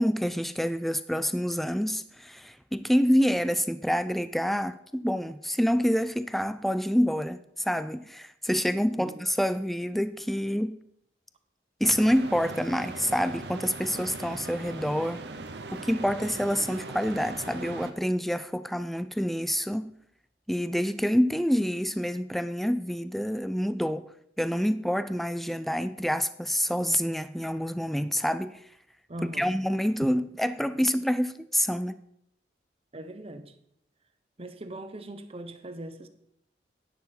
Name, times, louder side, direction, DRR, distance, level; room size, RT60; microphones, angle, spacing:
voice 1, 0.0-10.8 11.8-15.2 15.7-19.9 20.5-24.0 24.4-28.6 29.4-32.0, equal, ahead, 0.3 m, -27 dB
sound 1, 11.8-17.9, right 3 dB, 70° right, 1.0 m, -40 dB
voice 2, 29.1-29.6 30.0-30.1 32.9-33.5 34.4-36.1, right 1 dB, 35° right, 0.9 m, -40 dB
10.5 x 9.4 x 4.4 m
head